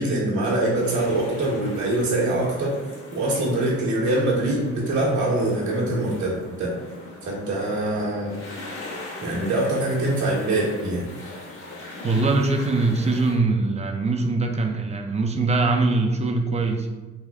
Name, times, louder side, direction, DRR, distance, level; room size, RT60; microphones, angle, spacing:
voice 1, 0.0-2.8 3.1-6.7 7.2-8.4 9.2-11.0, right 1 dB, 75° right, -4 dB, 1.2 m, -24 dB
sound 1, 0.7-13.4, left 2 dB, 85° left, 1.2 m, -40 dB
voice 2, 12.0-16.9, right 3 dB, 20° right, 4 dB, 0.5 m, -22 dB
3.4 x 2.2 x 3.6 m, 1.2 s
cardioid pair, 90°, 30 cm